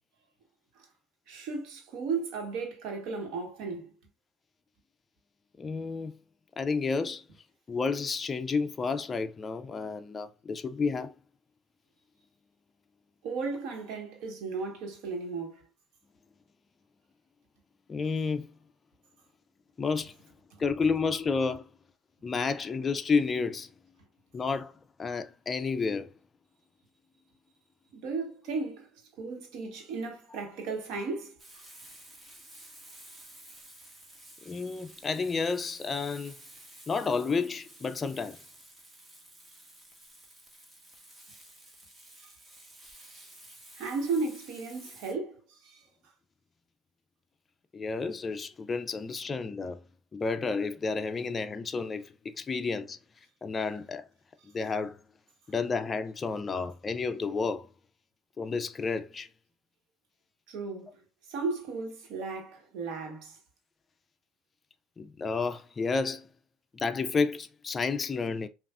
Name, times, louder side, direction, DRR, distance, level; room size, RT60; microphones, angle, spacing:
voice 1, 1.3-3.9 13.2-15.6 20.5-20.6 27.9-31.4 42.2-42.3 43.8-45.8 60.5-61.0 61.3-63.4, right 4 dB, 75° right, 1.3 m, -35 dB
voice 2, 5.6-6.1 6.6-7.2 7.7-11.1 17.9-18.5 19.8-20.1 20.6-21.7 22.2-23.7 24.3-24.7 25.0-26.1 34.5-36.4 36.9-38.4 47.7-49.8 50.1-53.0 53.4-54.0 54.5-55.0 55.5-57.7 58.4-59.3 65.0-66.3 66.7-68.5, left 4 dB, 25° left, 0.4 m, -31 dB
Frying (food), 31.4-45.1, right 1 dB, 20° right, 1.3 m, -52 dB
5.5 x 2.4 x 2.4 m
cardioid pair, 120°, 0 cm